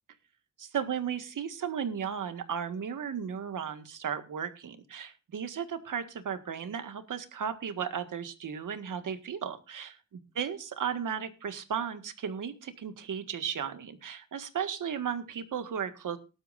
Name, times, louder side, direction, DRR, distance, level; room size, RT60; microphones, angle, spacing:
voice 1, 0.6-9.9 10.4-16.2, right 7 dB, 90° right, 9 dB, 1.8 m, -35 dB
19.0 x 12.0 x 2.5 m, 0.31 s
wide cardioid pair, 115°, 31 cm